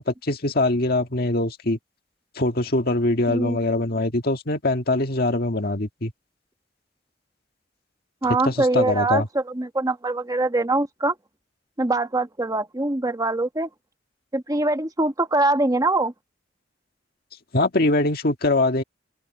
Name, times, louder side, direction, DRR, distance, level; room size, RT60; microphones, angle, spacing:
voice 1, 0.0-1.8 2.4-6.1 8.4-9.3 17.5-18.8, left 2 dB, 55° left, 1.8 m, -23 dB
voice 2, 8.2-11.1 11.8-13.7 14.3-16.1, right 2 dB, 20° right, 1.1 m, -23 dB
head